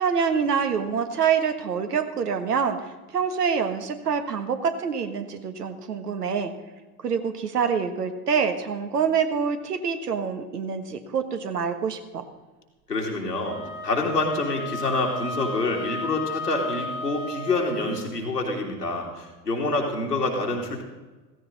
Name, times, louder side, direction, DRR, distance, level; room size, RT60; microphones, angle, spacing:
voice 1, 0.0-6.5 7.0-12.2, right 6 dB, 75° right, 7 dB, 1.5 m, -26 dB
voice 2, 12.9-13.6 13.8-20.8, left 2 dB, 85° left, -1 dB, 2.9 m, -27 dB
Wind instrument woodwind instrument, 13.4-18.0, left 2 dB, 55° right, 3.5 m, -34 dB
16.0 x 15.5 x 4.0 m, 1.2 s
figure-of-eight pair, 70°, 47 cm